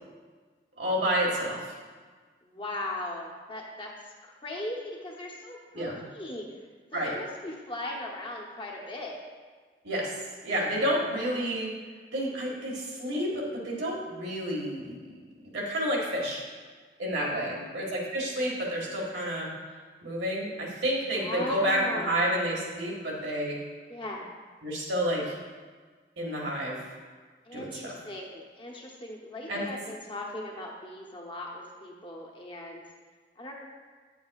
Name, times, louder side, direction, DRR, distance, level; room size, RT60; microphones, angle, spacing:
voice 1, 0.8-1.8 5.7-6.0 6.9-7.1 9.8-10.1 10.4-11.7 12.1-15.0 15.5-16.4 17.0-19.5 20.0-23.6 24.6-25.3 26.2-26.8 27.5-27.9 29.5-29.7, equal, 80° right, -3 dB, 1.8 m, -30 dB
voice 2, 2.4-6.6 6.9-9.2 11.1-11.4 17.3-17.7 21.2-22.3 23.9-24.2 27.5-32.8 33.4-33.5, left 1 dB, 25° left, -1 dB, 0.9 m, -39 dB
9.3 x 7.0 x 2.4 m, 1.5 s
head